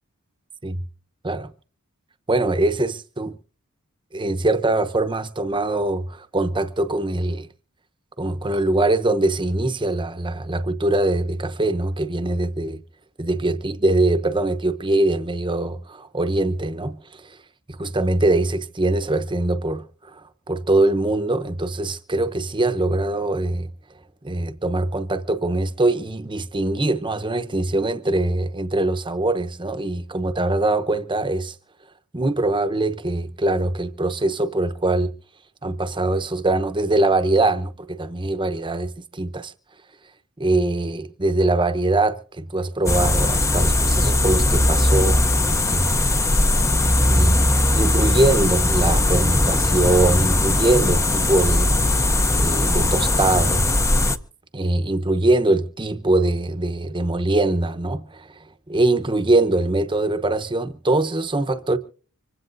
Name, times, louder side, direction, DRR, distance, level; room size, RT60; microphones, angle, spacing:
voice 1, 2.3-3.3 4.1-7.5 8.2-12.8 13.2-17.4 17.8-19.8 20.1-20.2 20.5-23.7 24.2-31.5 32.1-35.1 35.6-39.5 40.4-45.2 45.6-46.1 47.1-47.5 47.7-53.6 54.5-58.3 58.7-61.8, right 2 dB, 20° right, 0.9 m, -22 dB
sound 1, 42.9-54.2, left 1 dB, 15° left, 0.6 m, -19 dB
25.5 x 16.0 x 2.6 m
head